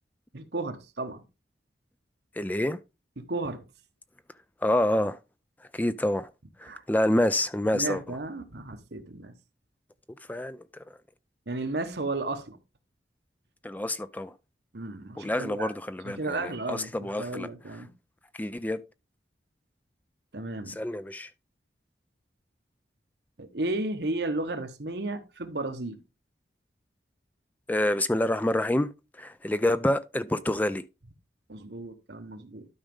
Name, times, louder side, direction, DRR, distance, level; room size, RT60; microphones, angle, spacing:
voice 1, 0.3-1.2 3.2-3.6 6.7-6.8 7.7-9.3 11.5-12.6 14.7-15.7 16.0-17.9 20.3-20.8 23.4-26.0 31.5-32.7, right 2 dB, 70° right, 1.2 m, -33 dB
voice 2, 2.3-2.8 4.6-5.2 5.6-6.3 6.6-8.2 10.3-11.0 13.6-14.3 15.2-17.5 18.3-18.8 20.7-21.3 27.7-30.8, left 1 dB, 10° left, 0.4 m, -27 dB
12.5 x 5.1 x 3.7 m
head